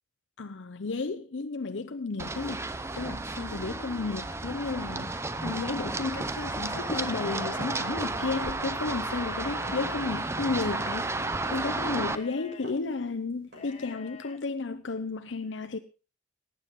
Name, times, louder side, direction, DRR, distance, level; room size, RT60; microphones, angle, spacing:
voice 1, 0.4-2.6 3.0-15.8, left 3 dB, 85° left, 0.7 m, -33 dB
Run, 2.2-12.2, right 2 dB, 15° right, 0.6 m, -32 dB
sound 1, 6.0-6.3 6.7-7.1 7.4-7.7 8.0-9.2 9.6-10.0 10.4-10.8 11.2-11.5 11.8-12.2 12.6-13.1 13.5-13.9, equal, 65° right, 6.4 m, -48 dB
sound 2, 6.6-7.9 8.9-10.6 11.4-12.7 13.5-14.4, left 6 dB, 35° left, 1.3 m, -47 dB
18.5 x 8.9 x 3.7 m
head